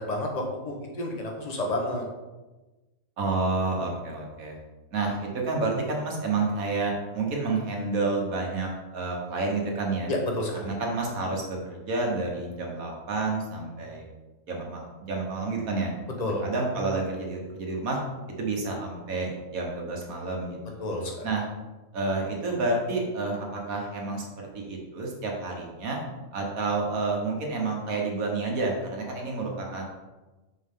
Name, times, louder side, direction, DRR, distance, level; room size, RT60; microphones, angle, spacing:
voice 1, 0.0-2.0 10.1-10.7 16.2-16.4 20.8-21.1, left 1 dB, 30° left, 1 dB, 1.1 m, -30 dB
voice 2, 3.2-4.6 4.9-10.1 10.6-14.1 14.5-15.9 16.4-18.0 18.4-20.8 21.2-21.4 21.9-26.0 26.3-29.8, right 3 dB, 90° right, 0 dB, 1.8 m, -29 dB
6.2 x 6.2 x 3.7 m, 1.1 s
omnidirectional pair, 1.4 m